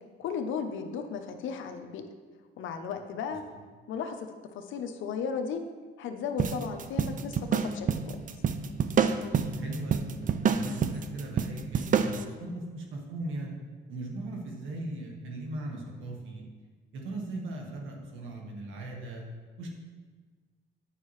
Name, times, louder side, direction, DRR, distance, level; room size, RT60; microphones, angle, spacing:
voice 1, 0.2-2.0 2.6-3.4 3.9-5.6 6.0-8.2, left 6 dB, 75° left, 6 dB, 0.7 m, -35 dB
sound 1, 6.4-12.2, right 7 dB, 40° right, 0.4 m, -28 dB
voice 2, 9.5-10.1 10.4-13.5 13.9-16.4 16.9-19.2 19.6-19.7, right 2 dB, 80° right, 0 dB, 1.4 m, -38 dB
9.1 x 5.5 x 3.1 m, 1.4 s
cardioid pair, 90°, 20 cm